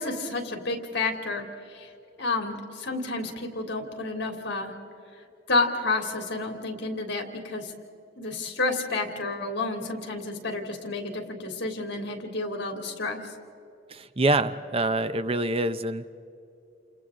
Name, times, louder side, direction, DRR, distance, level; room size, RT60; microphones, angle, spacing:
voice 1, 0.0-1.5 1.7-1.9 2.2-4.7 5.5-7.7 8.2-13.2, left 3 dB, 65° left, 3 dB, 3.1 m, -30 dB
voice 2, 13.9-16.0, right 2 dB, 30° right, 11 dB, 0.7 m, -25 dB
29.0 x 28.5 x 3.8 m, 2.7 s
head